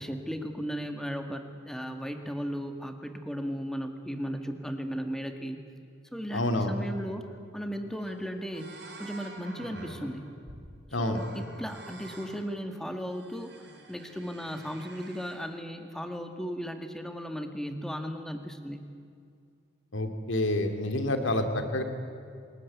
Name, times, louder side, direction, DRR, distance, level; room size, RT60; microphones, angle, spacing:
voice 1, 0.0-5.6 6.1-8.7 9.0-10.2 10.9-18.8, equal, ahead, 6 dB, 1.7 m, -36 dB
voice 2, 6.3-6.7 10.9-11.2 19.9-21.8, left 1 dB, 75° left, 6 dB, 2.6 m, -28 dB
sound 1, 7.6-7.7 7.9-8.2 8.5-10.7 11.1-12.4 13.0-15.4, right 2 dB, 55° right, 6.3 m, -48 dB
27.0 x 20.0 x 9.5 m, 2.4 s
head